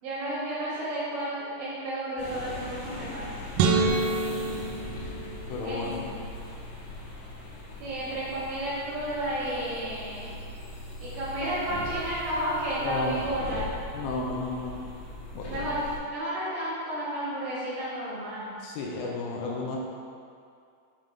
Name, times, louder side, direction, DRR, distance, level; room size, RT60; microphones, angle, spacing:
voice 1, 0.0-3.3 5.6-5.8 7.8-10.3 11.0-13.7 15.5-15.8 16.1-18.6, right 1 dB, 70° right, -9 dB, 2.9 m, -32 dB
sound 1, 2.2-16.0, left 2 dB, 65° left, 2.2 m, -40 dB
voice 2, 3.6-5.1 5.5-6.1 12.8-13.3 13.9-14.7 15.4-15.7 18.6-19.8, left 3 dB, 85° left, -2 dB, 3.2 m, -34 dB
sound 2, 3.6-5.9, right 4 dB, 90° right, 3.3 m, -27 dB
8.9 x 3.6 x 3.8 m, 2.4 s
omnidirectional pair, 5.9 m